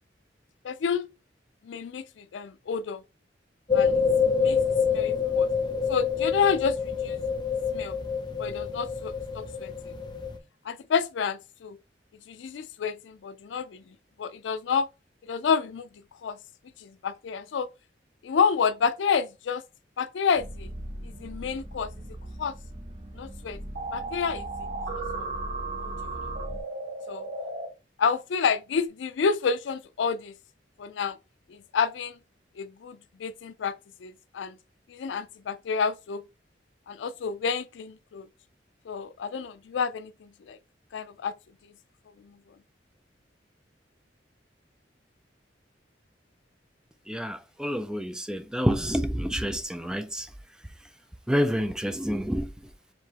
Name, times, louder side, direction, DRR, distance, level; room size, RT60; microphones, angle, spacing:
voice 1, 0.6-1.1 1.6-3.0 3.7-3.9 4.2-4.6 4.9-5.5 5.9-7.2 7.7-8.0 8.4-9.7 10.7-11.8 12.3-13.8 14.2-14.9 15.3-15.9 16.2-16.4 16.8-17.7 18.2-19.6 20.0-20.7 21.0-21.9 22.4-22.5 23.1-23.6 23.9-24.5 24.9-25.2 25.8-26.2 27.1-27.3 28.0-30.3 30.8-31.2 31.7-32.2 32.6-33.7 34.0-34.6 34.9-36.2 36.9-38.3 38.9-40.6 40.9-41.3 42.2-42.3, left 6 dB, 85° left, 0.4 m, -29 dB
sound 1, 3.7-10.4, left 6 dB, 25° left, 0.7 m, -26 dB
sound 2, 20.4-26.6, equal, 35° right, 0.7 m, -40 dB
sound 3, 23.7-27.7, right 3 dB, 80° right, 1.9 m, -35 dB
voice 2, 47.1-50.3 51.3-52.5, equal, 5° right, 0.4 m, -28 dB
4.7 x 2.9 x 2.9 m
head